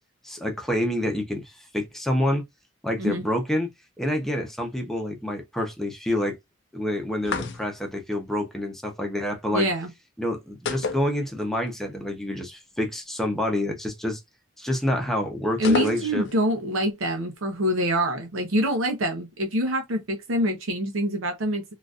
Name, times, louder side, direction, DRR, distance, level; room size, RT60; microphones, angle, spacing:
voice 1, 0.2-2.4 2.8-3.7 4.0-6.4 6.7-9.7 10.2-14.2 14.6-16.3, left 1 dB, ahead, 0.7 m, -27 dB
sound 1, 7.2-8.0 10.7-11.7 12.0-12.1 15.6-16.4, left 5 dB, 60° left, 0.5 m, -30 dB
voice 2, 9.5-9.9 15.6-21.6, equal, 70° right, 0.7 m, -25 dB
3.8 x 2.5 x 2.4 m
head